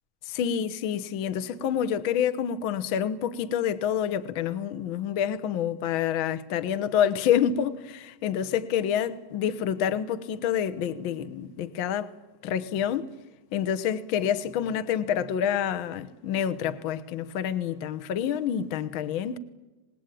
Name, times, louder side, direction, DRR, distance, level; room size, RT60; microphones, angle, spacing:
voice 1, 0.3-12.1 12.4-13.1 13.5-19.4, left 9 dB, 75° left, 1.2 m, -27 dB
26.0 x 20.0 x 9.2 m
omnidirectional pair, 3.8 m